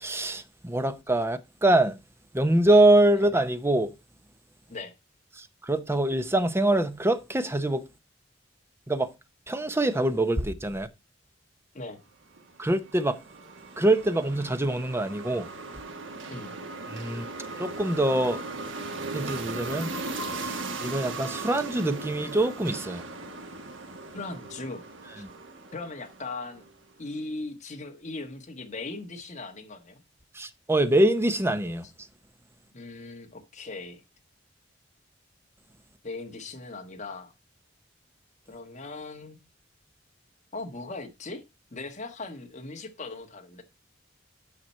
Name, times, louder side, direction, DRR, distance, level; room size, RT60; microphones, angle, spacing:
voice 1, 0.0-2.0 2.3-3.9 5.4-7.8 8.9-9.1 9.5-10.9 12.6-13.2 13.8-15.5 16.9-17.2 17.6-18.4 19.1-19.9 20.4-23.0 30.4-31.9, right 1 dB, 15° right, 0.7 m, -24 dB
sound 1, 12.4-26.7, right 3 dB, 75° right, 1.3 m, -38 dB
voice 2, 24.1-24.8 25.2-25.3 25.7-26.6 27.0-30.0 32.7-34.0 36.0-37.3 38.5-39.4 40.5-41.4 41.7-43.6, left 3 dB, 40° left, 1.5 m, -39 dB
9.2 x 5.9 x 4.2 m
head